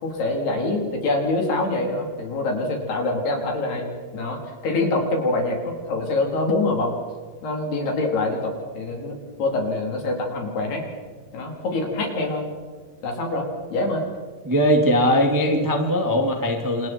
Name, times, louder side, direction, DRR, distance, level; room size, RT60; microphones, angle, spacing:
voice 1, 0.0-3.9 4.1-6.9 7.4-10.8 11.3-12.4 13.0-14.0, left 2 dB, 60° left, 1 dB, 5.7 m, -25 dB
voice 2, 14.4-16.9, equal, 10° right, 2 dB, 0.9 m, -20 dB
28.5 x 27.0 x 4.6 m, 1.5 s
omnidirectional pair, 5.2 m